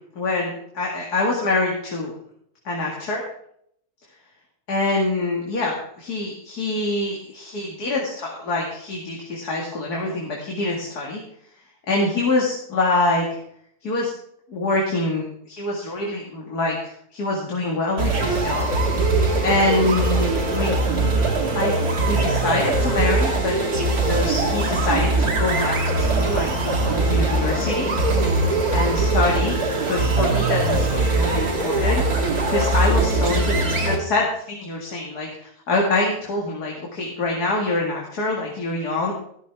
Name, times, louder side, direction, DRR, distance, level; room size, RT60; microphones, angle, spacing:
voice 1, 0.1-2.1 2.6-3.2 4.7-11.2 11.9-13.4 13.8-14.1 14.5-18.7 19.4-20.8 21.5-23.6 23.8-27.9 28.7-29.6 29.9-32.0 32.5-39.1, left 2 dB, 75° left, -2 dB, 2.6 m, -25 dB
sound 1, 18.0-34.0, right 2 dB, 65° right, 2.5 m, -21 dB
14.0 x 13.5 x 3.5 m, 0.68 s
omnidirectional pair, 1.7 m